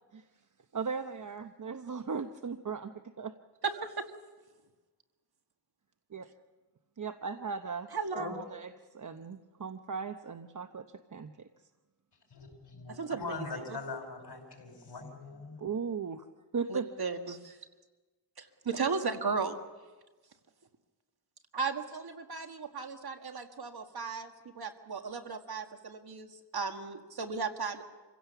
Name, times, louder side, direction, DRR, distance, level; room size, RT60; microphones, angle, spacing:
voice 1, 0.7-3.3 6.1-6.3 7.0-7.9 8.1-8.7 8.9-10.8 11.1-11.5 15.6-16.3 16.5-16.9, right 5 dB, 45° right, 8 dB, 0.9 m, -37 dB
voice 2, 3.6-4.0 7.9-8.3 12.9-13.8 16.7-17.6 18.4-19.6 21.5-27.8, right 5 dB, 65° right, 6 dB, 1.7 m, -36 dB
voice 3, 8.1-8.4 12.3-15.6, left 4 dB, 85° left, 3 dB, 5.1 m, -42 dB
27.0 x 16.5 x 6.9 m, 1.3 s
wide cardioid pair, 70°, 40 cm